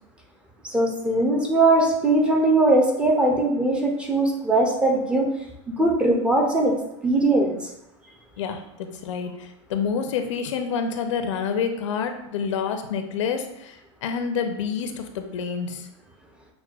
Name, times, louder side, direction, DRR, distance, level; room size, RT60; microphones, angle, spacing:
voice 1, 0.6-5.3 5.7-6.8 7.0-7.6, right 2 dB, 5° right, 1 dB, 0.4 m, -20 dB
voice 2, 8.4-15.9, left 6 dB, 85° left, 6 dB, 0.5 m, -28 dB
6.0 x 2.1 x 2.3 m, 0.86 s
supercardioid pair, 155°, 15 cm